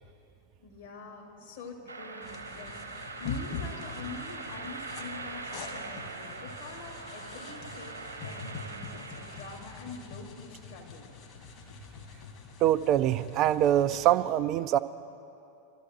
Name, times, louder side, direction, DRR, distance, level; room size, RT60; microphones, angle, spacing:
voice 1, 0.6-2.8 3.2-11.1, left 3 dB, 55° left, -1 dB, 2.9 m, -45 dB
sound 1, 1.9-10.0, right 4 dB, 80° right, 1.1 m, -42 dB
sound 2, 2.2-14.1, left 5 dB, 40° left, 1.9 m, -44 dB
voice 2, 12.6-14.8, right 12 dB, 35° right, 12 dB, 0.4 m, -24 dB
24.5 x 13.5 x 3.0 m, 2.6 s
figure-of-eight pair, 90°, 0 cm